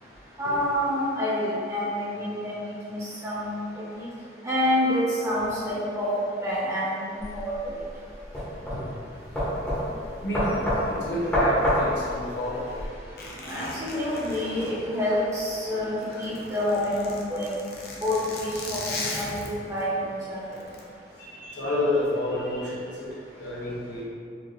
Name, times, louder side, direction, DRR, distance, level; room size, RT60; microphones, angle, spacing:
voice 1, 0.4-2.6 2.9-3.6 3.9-4.1 4.4-6.1 6.4-7.8 13.4-15.9 16.2-17.6 17.9-20.4, left 1 dB, 15° right, -9 dB, 1.0 m, -28 dB
sound 1, 7.2-12.9, equal, 10° left, 0.9 m, -27 dB
voice 2, 10.2-12.8 19.0-19.1 21.2-24.0, left 1 dB, 80° left, -7 dB, 1.0 m, -29 dB
Zipper (clothing), 13.2-15.6 15.9-19.8 20.5-20.8, left 2 dB, 55° left, 0.6 m, -37 dB
4.2 x 2.7 x 3.2 m, 2.3 s
head